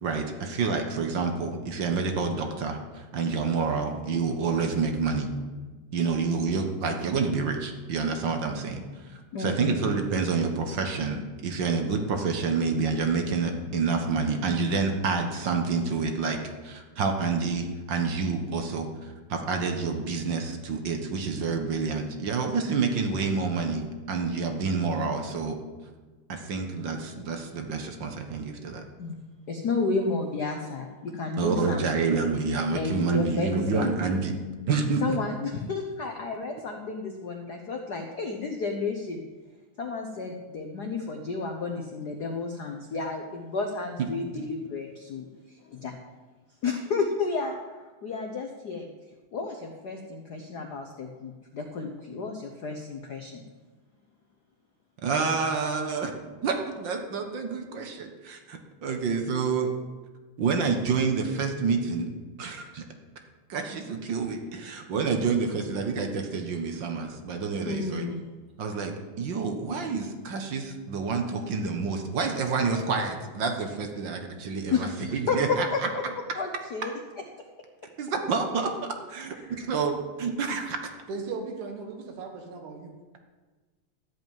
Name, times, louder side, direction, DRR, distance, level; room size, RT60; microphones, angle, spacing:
voice 1, 0.0-5.3 5.9-8.8 9.4-25.6 26.3-28.8 31.3-34.3 34.7-35.0 44.0-44.1 55.0-56.1 56.4-59.7 60.4-62.1 62.4-62.8 63.5-68.1 68.6-75.9 78.0-78.7 79.1-80.8, right 4 dB, 50° right, 5 dB, 1.5 m, -28 dB
voice 2, 9.3-9.8 29.0-31.9 32.7-33.9 35.0-39.2 39.8-45.9 46.6-48.9 49.3-53.4 67.7-68.2 74.7-76.0 76.3-76.9 79.5-79.7, left 4 dB, 85° left, 3 dB, 0.9 m, -32 dB
voice 3, 81.1-83.0, right 4 dB, 85° right, 3 dB, 2.8 m, -37 dB
13.5 x 5.3 x 9.2 m, 1.3 s
omnidirectional pair, 3.3 m